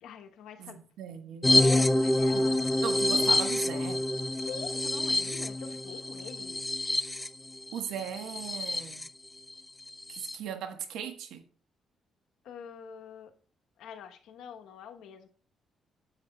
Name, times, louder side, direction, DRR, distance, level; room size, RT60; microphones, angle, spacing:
voice 1, 0.0-0.8 1.6-2.9 4.5-6.6 12.4-13.3 13.8-15.3, left 7 dB, 85° left, 1.1 m, -45 dB
voice 2, 0.6-1.6 2.3-2.5 2.8-4.0 7.7-9.1 10.1-11.4, right 8 dB, 85° right, 1.3 m, -38 dB
sound 1, 1.4-9.1 9.5-9.6 9.9-10.4, left 2 dB, 15° left, 0.5 m, -27 dB
10.5 x 8.0 x 2.4 m
cardioid pair, 90°, 0 cm